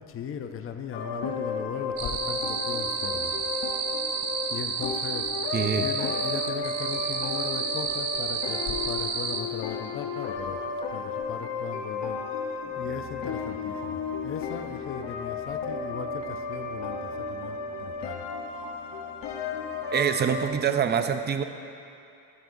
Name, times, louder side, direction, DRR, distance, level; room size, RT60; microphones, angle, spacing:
voice 1, 0.0-3.4 4.5-10.6 10.9-18.2, left 7 dB, 35° left, 6 dB, 0.5 m, -38 dB
sound 1, 0.9-20.5, left 4 dB, 85° left, 1.0 m, -34 dB
sound 2, 2.0-9.4, right 5 dB, 65° right, 0.9 m, -31 dB
voice 2, 5.5-5.9 19.9-21.4, right 7 dB, 30° right, 8 dB, 0.3 m, -25 dB
Brass instrument, 12.6-20.1, right 3 dB, 10° left, 2.7 m, -51 dB
13.0 x 12.5 x 2.6 m, 2.7 s
cardioid pair, 180°, 41 cm